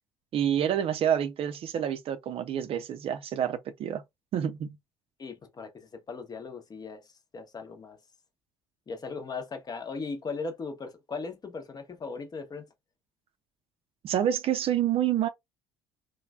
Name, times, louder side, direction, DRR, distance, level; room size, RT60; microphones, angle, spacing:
voice 1, 0.3-4.0 4.3-4.7 14.0-15.3, right 10 dB, 50° right, 0.5 m, -28 dB
voice 2, 5.2-7.0 7.3-8.0 8.9-12.6, left 4 dB, 30° left, 0.8 m, -38 dB
3.1 x 2.2 x 2.3 m
hypercardioid pair, 60°, 13 cm